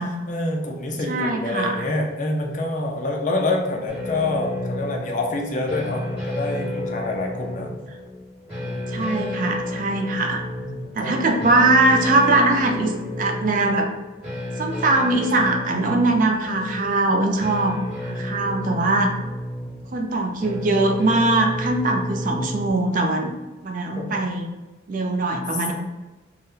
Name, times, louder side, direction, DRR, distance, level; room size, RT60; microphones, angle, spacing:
voice 1, 0.3-7.7 8.6-8.8 10.6-11.4 24.0-24.1, left 2 dB, 40° left, 1 dB, 0.4 m, -27 dB
voice 2, 1.1-1.8 8.9-10.4 11.0-12.9 13.2-13.9 14.6-17.8 18.0-19.1 19.9-23.3 23.6-24.5 24.9-25.7, right 2 dB, 45° right, 3 dB, 0.4 m, -21 dB
sound 1, 3.9-22.7, left 1 dB, 5° right, 1.3 m, -31 dB
2.6 x 2.1 x 3.6 m, 1.1 s
head